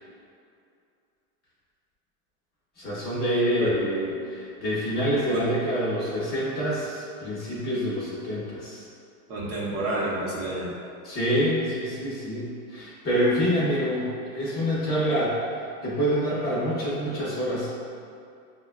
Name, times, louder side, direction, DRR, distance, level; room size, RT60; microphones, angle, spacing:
voice 1, 2.8-8.9 11.0-15.4 15.8-17.8, equal, 20° left, -8 dB, 0.7 m, -26 dB
voice 2, 9.3-10.7, right 1 dB, 30° right, -6 dB, 0.8 m, -29 dB
6.1 x 2.2 x 2.4 m, 2.5 s
supercardioid pair, 145°, 46 cm